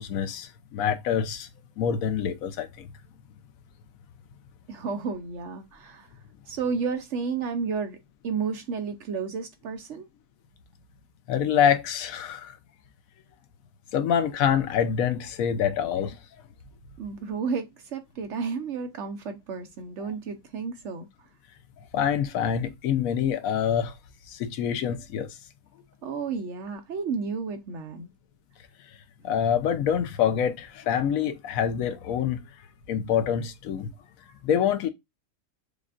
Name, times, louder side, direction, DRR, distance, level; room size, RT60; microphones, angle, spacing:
voice 1, 0.0-1.5 1.8-2.9 11.3-12.6 13.9-16.2 21.9-23.9 24.3-25.3 29.2-32.4 32.9-33.9 34.4-34.9, left 8 dB, 70° left, 0.9 m, -26 dB
voice 2, 4.7-6.1 6.5-8.0 8.2-10.1 17.0-21.1 26.0-28.1, right 5 dB, 65° right, 0.8 m, -32 dB
6.6 x 2.5 x 2.4 m
omnidirectional pair, 1.7 m